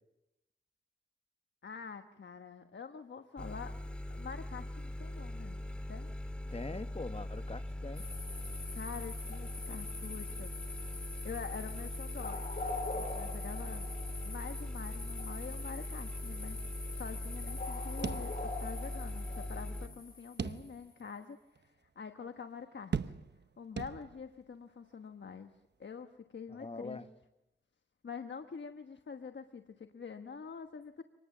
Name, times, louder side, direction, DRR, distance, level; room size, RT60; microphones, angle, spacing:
voice 1, 1.6-3.7 4.1-5.6 5.9-6.1 8.7-10.5 11.2-12.4 12.9-13.9 14.2-16.6 17.0-21.6 21.9-23.1 23.6-25.5 25.8-27.0 28.0-31.0, left 6 dB, 70° left, 7 dB, 1.2 m, -46 dB
sound 1, 3.4-19.9, left 1 dB, 5° left, 2.8 m, -41 dB
voice 2, 6.5-8.0 26.5-27.1, left 3 dB, 30° left, 9 dB, 1.4 m, -43 dB
sound 2, 8.0-20.8, left 3 dB, 50° left, 5.7 m, -44 dB
sound 3, 18.0-18.9 19.2-19.3 20.4-21.0 21.6-21.7 22.9-23.5 23.8-24.4, right 6 dB, 60° right, 0.9 m, -38 dB
26.5 x 20.0 x 7.3 m, 0.93 s
wide cardioid pair, 65°, 19 cm